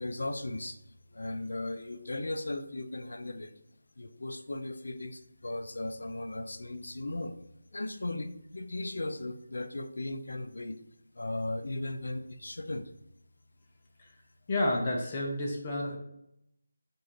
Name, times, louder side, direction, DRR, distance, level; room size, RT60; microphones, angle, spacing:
voice 1, 0.0-3.5 4.0-7.4 7.7-10.8 11.1-12.9, left 2 dB, 65° left, 8 dB, 0.4 m, -37 dB
voice 2, 14.5-16.0, left 1 dB, 30° left, -1 dB, 0.7 m, -30 dB
6.1 x 2.6 x 3.0 m, 0.79 s
figure-of-eight pair, 160°, 0 cm